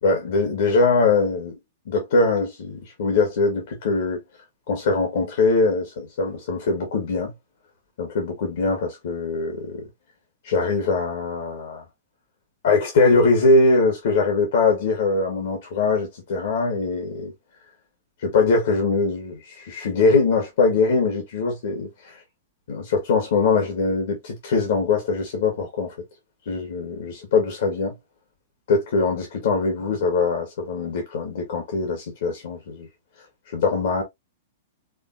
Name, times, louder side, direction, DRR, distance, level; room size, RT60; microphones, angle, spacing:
voice 1, 0.0-1.6 1.9-4.2 4.7-7.3 8.0-9.8 10.4-11.8 12.6-17.3 18.2-22.2 22.7-25.9 26.5-28.0 28.7-32.9 33.5-34.0, left 3 dB, 55° left, 1.9 m, -22 dB
5.5 x 3.4 x 2.7 m
figure-of-eight pair, 100°, 0 cm